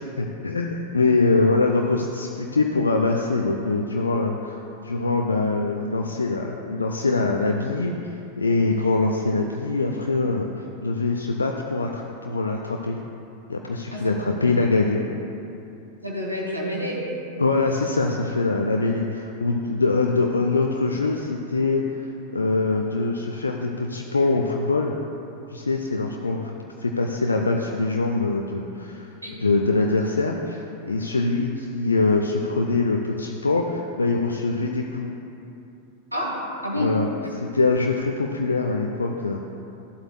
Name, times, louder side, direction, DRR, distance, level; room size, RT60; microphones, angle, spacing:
voice 1, 0.0-4.6 4.8-7.9 8.4-13.0 13.5-15.0 17.4-22.1 22.3-24.9 25.5-26.5 26.8-29.1 29.4-35.1 36.8-37.1 37.3-39.4, left 3 dB, 75° left, 2 dB, 0.5 m, -23 dB
voice 2, 13.9-14.3 16.0-17.0 29.2-29.4 36.1-36.4 36.6-36.9 37.2-37.3, left 1 dB, 90° right, -4 dB, 2.0 m, -29 dB
13.5 x 7.8 x 2.2 m, 2.8 s
figure-of-eight pair, 90°, 0 cm